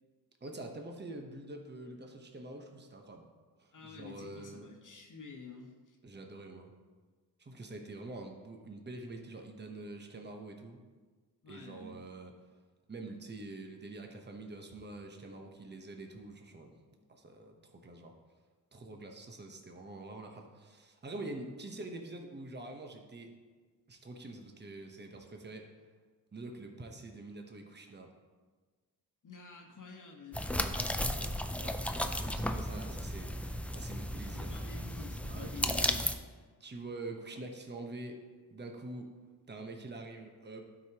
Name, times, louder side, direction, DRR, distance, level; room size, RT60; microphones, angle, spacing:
voice 1, 0.4-3.3 3.6-4.7 6.0-6.7 7.4-10.8 11.5-12.3 12.9-16.8 17.1-18.1 18.7-23.3 23.9-25.7 26.3-28.1 31.1-34.5 35.3-36.0 36.6-38.2 38.5-39.1 39.5-40.7, right 2 dB, 25° right, 3 dB, 1.0 m, -46 dB
voice 2, 3.7-6.0 11.4-12.0 17.0-17.1 29.2-30.5 34.2-36.1, left 4 dB, 50° left, 1 dB, 1.1 m, -49 dB
sound 1, 30.3-36.1, left 1 dB, 5° left, 0.4 m, -34 dB
11.5 x 4.9 x 2.9 m, 1.4 s
cardioid pair, 70°, 39 cm